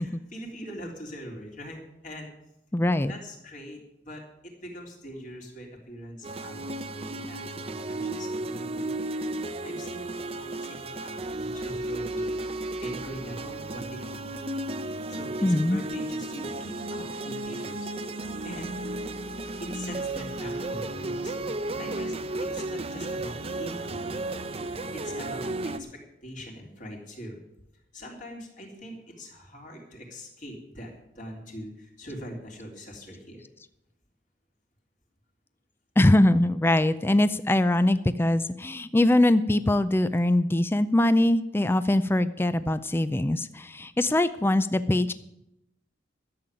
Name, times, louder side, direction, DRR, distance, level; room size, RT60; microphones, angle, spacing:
voice 1, 0.0-2.3 3.1-8.9 9.6-12.4 12.8-14.4 15.1-17.9 18.4-18.7 19.6-21.4 21.8-24.1 24.9-27.4 27.9-33.4, equal, 45° left, 0 dB, 3.4 m, -42 dB
voice 2, 2.7-3.1 15.4-15.8 36.0-45.1, left 1 dB, 10° left, 13 dB, 0.4 m, -22 dB
sound 1, 6.2-25.8, right 2 dB, 30° right, 0.7 m, -34 dB
12.5 x 7.6 x 9.1 m, 0.85 s
head